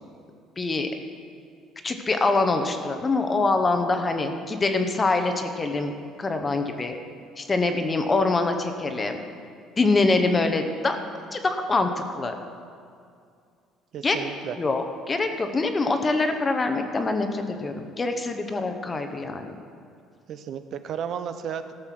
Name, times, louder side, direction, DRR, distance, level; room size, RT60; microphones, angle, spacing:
voice 1, 0.6-0.9 1.8-7.0 7.4-9.2 9.8-11.0 11.3-12.4 14.0-14.2 14.6-19.5, left 3 dB, 20° left, 6 dB, 0.8 m, -24 dB
voice 2, 13.9-14.6 20.3-21.7, right 8 dB, 50° right, 10 dB, 0.6 m, -33 dB
14.0 x 6.6 x 5.9 m, 2.3 s
cardioid pair, 140°, 0 cm